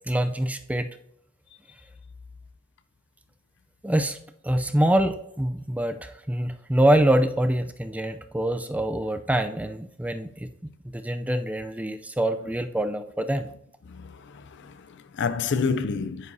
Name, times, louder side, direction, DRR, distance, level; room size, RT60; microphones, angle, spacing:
voice 1, 0.1-0.9 3.8-4.2 4.4-13.5, right 1 dB, 5° right, 0.4 m, -25 dB
voice 2, 13.9-16.3, left 5 dB, 55° left, 0.4 m, -29 dB
9.9 x 9.3 x 2.7 m
head